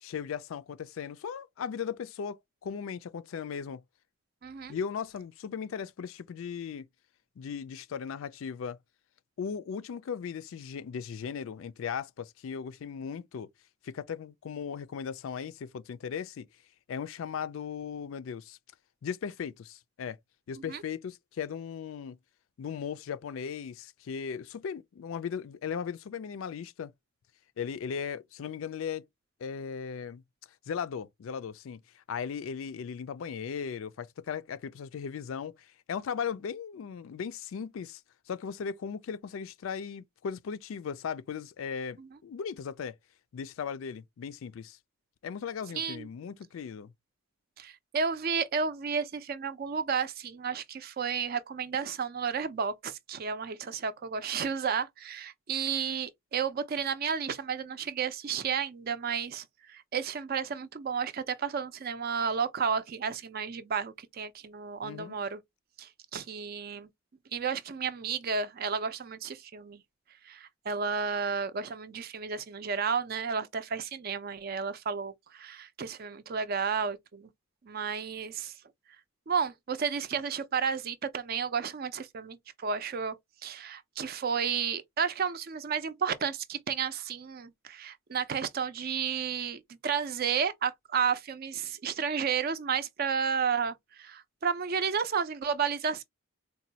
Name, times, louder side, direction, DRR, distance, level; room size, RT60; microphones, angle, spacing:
voice 1, 0.0-3.8 4.7-6.9 7.4-8.8 9.4-13.5 13.8-16.5 16.9-18.6 19.0-20.2 20.5-22.2 22.6-26.9 27.6-29.1 29.4-30.2 30.7-38.0 38.3-42.9 43.3-44.8 45.2-46.9 64.8-65.2, left 7 dB, 70° left, 0.4 m, -37 dB
voice 2, 4.4-4.8 20.6-20.8 42.0-42.1 45.8-46.1 47.6-65.4 65.8-66.9 67.3-69.8 70.2-77.3 77.6-78.6 79.3-83.2 83.4-96.0, right 6 dB, 45° right, 0.4 m, -32 dB
4.0 x 2.2 x 2.7 m
head